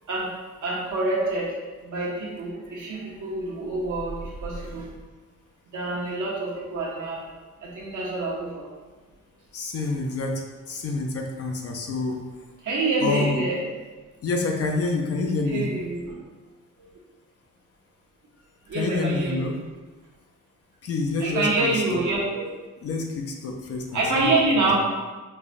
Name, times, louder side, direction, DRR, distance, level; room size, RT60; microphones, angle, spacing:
voice 1, 0.0-0.3 0.6-4.9 5.7-7.3 7.6-8.6 12.6-13.6 15.5-16.1 18.7-19.5 21.2-22.4 23.9-24.8, right 2 dB, 70° right, -5 dB, 0.9 m, -26 dB
voice 2, 9.5-10.3 10.7-12.2 13.0-13.4 14.2-15.7 18.7-19.6 20.8-22.0 22.8-24.6, left 3 dB, 50° left, 1 dB, 0.5 m, -27 dB
5.4 x 2.2 x 2.5 m, 1.3 s
wide cardioid pair, 165°, 31 cm